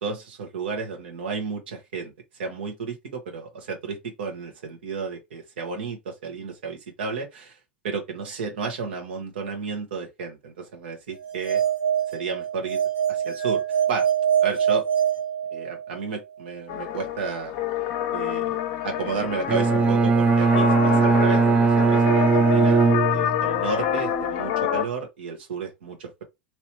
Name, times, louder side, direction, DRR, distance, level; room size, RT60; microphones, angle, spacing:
voice 1, 0.0-2.1 2.4-7.5 7.8-11.6 12.1-12.8 13.1-14.1 14.4-14.8 15.5-17.5 18.1-22.8 23.1-26.2, right 4 dB, 75° right, 1.3 m, -32 dB
sound 1, 11.2-16.0, right 9 dB, 50° right, 1.6 m, -24 dB
sound 2, 16.7-24.8, left 10 dB, 55° left, 0.6 m, -27 dB
Bowed string instrument, 19.5-23.7, right 4 dB, 25° right, 0.6 m, -19 dB
3.0 x 3.0 x 2.9 m
hypercardioid pair, 90°, 6 cm